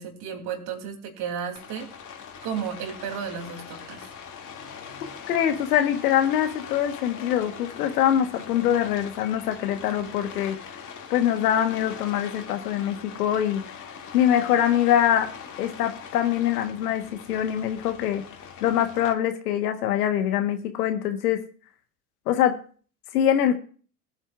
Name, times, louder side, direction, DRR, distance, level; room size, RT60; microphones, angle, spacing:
voice 1, 0.0-1.9 2.4-4.0, right 7 dB, 55° right, 4 dB, 3.1 m, -33 dB
Rain, 1.6-19.1, left 7 dB, 40° left, 2.3 m, -42 dB
voice 2, 5.3-10.6 11.1-13.6 14.1-15.3 15.6-17.0 17.3-18.2 18.6-21.4 22.3-22.6 23.1-23.5, left 10 dB, 80° left, 7 dB, 1.4 m, -23 dB
19.5 x 8.9 x 2.4 m, 0.41 s
hypercardioid pair, 80°, 45 cm